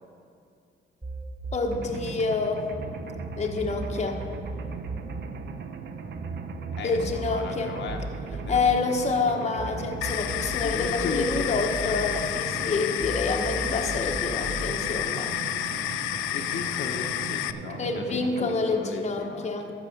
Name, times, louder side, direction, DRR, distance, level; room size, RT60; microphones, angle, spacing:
sound 1, 1.0-2.8 3.1-9.7 10.0-12.7 13.0-14.7, right 2 dB, 25° right, 2.8 m, -37 dB
voice 1, 1.5-2.7 3.4-4.2 6.8-7.7 8.5-15.3 17.8-19.7, left 4 dB, 35° left, 2 dB, 1.1 m, -27 dB
Mechanisms, 1.7-18.6, right 5 dB, 60° right, 0.8 m, -39 dB
voice 2, 6.7-8.0 8.3-8.7 9.0-9.8 10.6-12.0 16.3-19.5, left 5 dB, 65° left, 2 dB, 1.1 m, -36 dB
sound 2, 10.0-17.5, left 13 dB, 85° left, 0.4 m, -30 dB
12.5 x 4.8 x 7.8 m, 2.5 s
cardioid pair, 90°, 20 cm